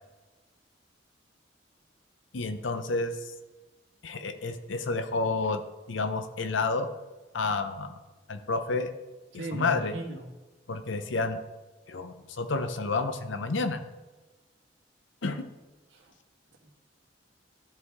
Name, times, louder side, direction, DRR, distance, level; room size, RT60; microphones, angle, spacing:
voice 1, 2.3-3.1 4.0-5.6 5.9-6.9 7.3-8.0 8.3-8.9 9.5-10.0 10.7-11.4 11.9-13.8 15.2-15.5, left 3 dB, 85° left, 8 dB, 0.7 m, -30 dB
voice 2, 9.3-10.3 15.9-16.0 16.6-16.7, right 1 dB, 90° right, 1 dB, 1.6 m, -37 dB
13.5 x 4.7 x 3.5 m, 1.2 s
head